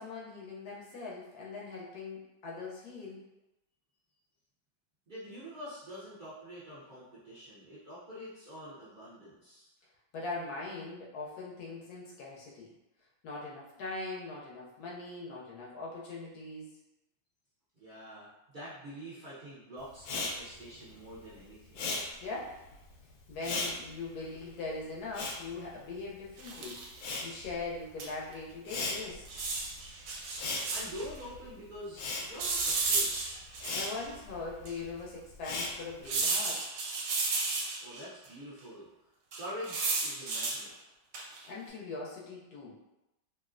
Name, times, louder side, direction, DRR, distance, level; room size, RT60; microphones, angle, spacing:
voice 1, 0.0-3.2 10.1-12.7 13.2-16.8 22.2-22.6 23.3-26.8 27.2-29.4 33.7-36.6 41.4-42.7, left 3 dB, 70° left, -4 dB, 1.0 m, -41 dB
voice 2, 5.1-9.7 17.8-21.9 30.7-33.2 37.8-38.9 39.4-40.7, equal, 55° right, -10 dB, 0.5 m, -45 dB
Respiratory sounds, 20.0-26.5 26.7-36.2, left 3 dB, 85° left, 1.3 m, -39 dB
sound 1, 26.4-27.0 28.0-28.1 28.3-28.4 29.2-31.1 32.4-34.0 34.6-34.7 36.0-38.0 39.3-40.6 41.1-41.5, right 3 dB, 70° right, 1.1 m, -33 dB
3.1 x 2.5 x 2.4 m, 0.93 s
omnidirectional pair, 1.9 m